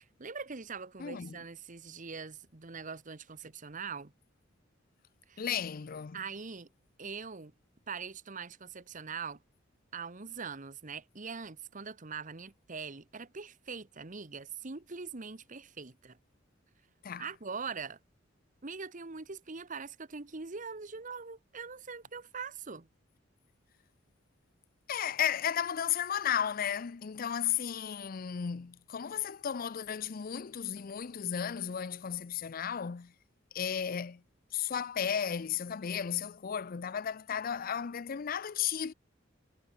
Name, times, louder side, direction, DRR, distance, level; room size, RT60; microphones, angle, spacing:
voice 1, 0.2-4.1 5.3-5.4 6.1-6.7 7.0-7.5 7.9-9.4 9.9-16.2 17.2-18.0 18.6-22.9, right 5 dB, 40° right, 1.2 m, -42 dB
voice 2, 1.0-1.4 5.4-6.2 17.0-17.3 24.9-33.1 33.5-34.2 34.5-38.9, left 8 dB, 45° left, 0.5 m, -34 dB
head